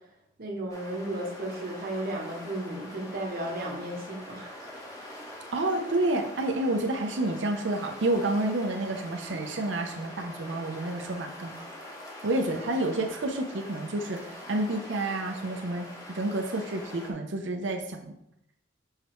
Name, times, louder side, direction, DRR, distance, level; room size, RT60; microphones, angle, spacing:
voice 1, 0.4-4.7, right 1 dB, 50° right, -1 dB, 1.0 m, -34 dB
sound 1, 0.7-17.1, left 1 dB, 20° left, 1.1 m, -44 dB
voice 2, 5.5-11.6 12.2-18.1, right 2 dB, 70° right, 3 dB, 0.7 m, -29 dB
6.6 x 4.9 x 3.1 m, 0.80 s
head